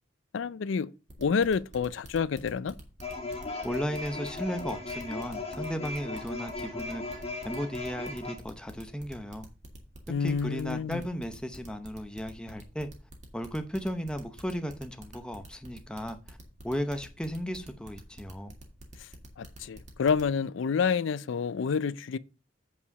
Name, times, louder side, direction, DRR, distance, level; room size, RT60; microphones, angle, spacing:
voice 1, 0.3-0.9 1.2-2.7 10.1-11.0 19.4-22.2, left 6 dB, 75° left, 0.4 m, -28 dB
sound 1, 1.1-20.3, right 1 dB, 35° right, 1.9 m, -47 dB
sound 2, 3.0-8.3, left 3 dB, 30° left, 1.8 m, -37 dB
voice 2, 3.6-9.5 10.1-12.9 13.3-16.4 16.6-18.5, equal, 5° left, 0.7 m, -35 dB
8.4 x 4.8 x 5.4 m
head